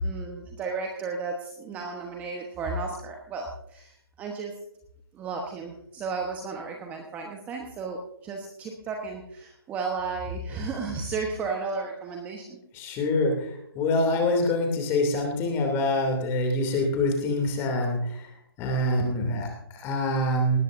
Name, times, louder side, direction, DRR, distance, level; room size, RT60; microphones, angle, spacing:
voice 1, 0.0-4.5 5.1-12.6, right 3 dB, 10° right, 2 dB, 1.1 m, -33 dB
voice 2, 12.7-18.3 18.6-20.6, left 1 dB, 20° left, 3 dB, 2.7 m, -25 dB
19.0 x 14.5 x 2.6 m, 0.75 s
figure-of-eight pair, 150°, 13 cm